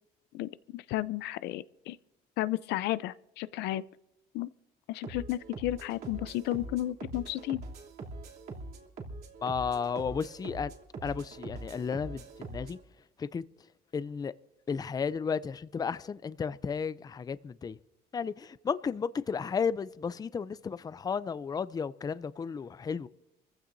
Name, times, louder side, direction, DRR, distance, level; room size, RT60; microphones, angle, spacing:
voice 1, 0.3-2.0 2.4-3.8 4.3-4.5 4.9-7.6, left 15 dB, 85° left, 0.5 m, -33 dB
sound 1, 5.0-12.8, right 2 dB, 60° right, 3.0 m, -43 dB
voice 2, 9.4-10.7 11.0-12.8 13.2-13.4 13.9-14.3 14.7-17.8 18.1-23.1, left 6 dB, 20° left, 0.5 m, -33 dB
28.0 x 15.0 x 2.7 m
cardioid pair, 110°, 17 cm